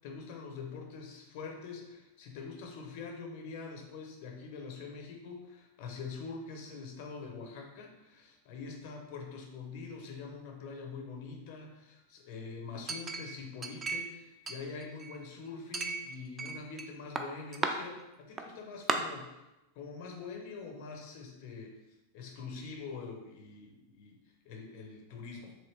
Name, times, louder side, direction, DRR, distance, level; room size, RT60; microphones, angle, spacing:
voice 1, 0.0-19.4 19.8-21.8 22.1-24.2 24.4-25.6, left 4 dB, 45° left, 2 dB, 0.6 m, -44 dB
Chink clink, 12.9-14.2 14.5-15.2 15.7-16.9 17.2-17.7 18.4-18.5 18.9-19.0, right 4 dB, 20° right, 0.3 m, -35 dB
3.2 x 2.8 x 3.1 m, 0.99 s
figure-of-eight pair, 90°, 0 cm